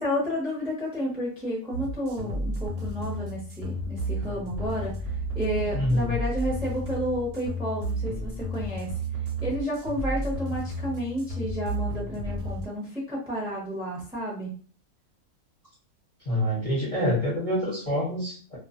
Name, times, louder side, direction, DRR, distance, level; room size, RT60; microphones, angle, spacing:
voice 1, 0.0-8.9 9.4-14.5, equal, 5° right, -4 dB, 0.6 m, -31 dB
sound 1, 1.7-12.7, right 1 dB, 85° right, 1.1 m, -32 dB
voice 2, 5.7-6.2 16.3-18.6, equal, 30° left, -5 dB, 0.7 m, -26 dB
2.4 x 2.4 x 2.5 m, 0.41 s
omnidirectional pair, 1.6 m